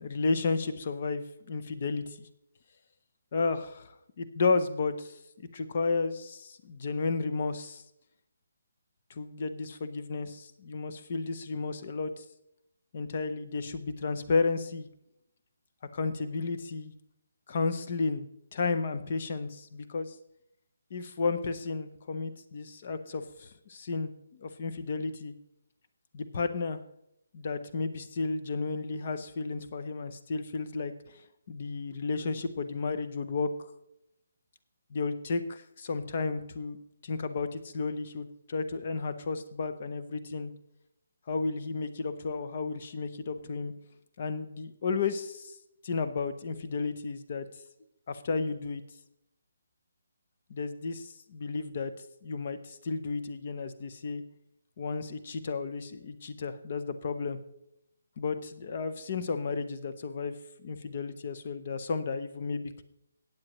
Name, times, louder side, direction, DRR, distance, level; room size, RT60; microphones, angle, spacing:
voice 1, 0.0-2.3 3.3-7.8 9.1-12.2 12.9-14.9 15.9-16.9 17.5-18.3 18.5-20.2 20.9-24.1 24.4-25.3 26.1-26.8 27.3-31.2 31.5-33.7 34.9-36.8 37.0-40.5 41.3-43.7 44.2-45.6 45.8-47.5 48.1-48.8 50.5-51.9 52.2-54.2 54.8-57.4 58.2-62.8, left 4 dB, 30° left, 10 dB, 0.6 m, -33 dB
15.0 x 8.9 x 3.0 m, 0.80 s
hypercardioid pair, 180°, 0 cm